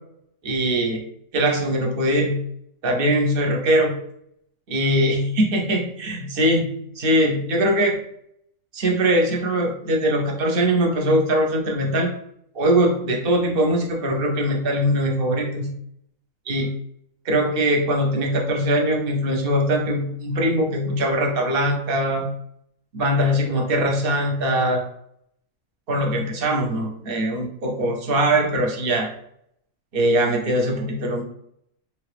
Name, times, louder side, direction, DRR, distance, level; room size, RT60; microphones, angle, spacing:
voice 1, 0.4-1.0 1.3-2.4 2.8-4.0 4.7-8.0 8.7-12.1 12.5-15.7 16.5-16.7 17.2-22.3 22.9-24.8 25.9-29.1 29.9-31.2, right 1 dB, 50° right, 1 dB, 0.8 m, -21 dB
2.9 x 2.4 x 3.3 m, 0.72 s
omnidirectional pair, 1.4 m